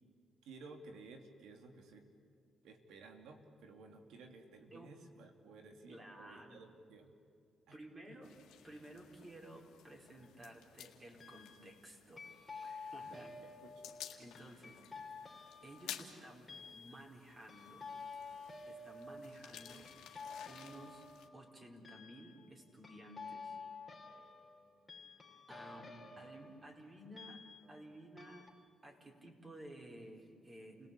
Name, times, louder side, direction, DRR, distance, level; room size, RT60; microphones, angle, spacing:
voice 1, 0.4-2.1 2.6-7.1 7.7-7.8 8.1-8.2 13.0-14.0 25.8-26.5, right 3 dB, 85° right, 5 dB, 2.9 m, -56 dB
voice 2, 5.9-6.6 7.7-8.3 8.6-13.5 14.2-14.8 15.6-17.9 18.7-21.0 21.3-23.6 25.5-27.4 27.7-28.5 28.8-30.9, right 1 dB, 30° right, 0 dB, 5.0 m, -54 dB
sound 1, 8.2-21.3, left 10 dB, 85° left, 1.9 m, -55 dB
sound 2, 9.9-10.4 11.2-11.8 12.2-27.9 28.2-28.5, left 4 dB, 25° left, 2.9 m, -51 dB
29.5 x 18.5 x 8.5 m, 2.3 s
cardioid pair, 85°, 0 cm